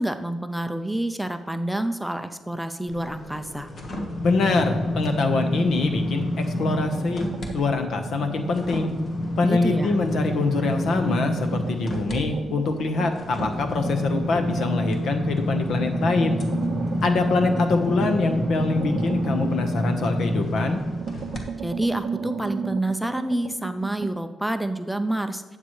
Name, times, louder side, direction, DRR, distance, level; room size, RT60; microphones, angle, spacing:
voice 1, 0.0-3.7 9.4-9.9 21.6-25.6, right 1 dB, 5° right, 8 dB, 0.4 m, -28 dB
sound 1, 2.9-7.5 7.9-21.4 21.9-22.0, left 1 dB, 45° left, 1.4 m, -29 dB
voice 2, 4.2-7.3 7.5-8.9 9.4-16.4 17.0-20.8, left 3 dB, 70° left, 6 dB, 1.1 m, -24 dB
sound 2, 6.6-9.0 9.3-15.0 15.4-20.5 20.8-24.2, right 6 dB, 60° right, 0.5 m, -35 dB
12.0 x 8.1 x 3.2 m, 1.3 s
cardioid pair, 115°, 0 cm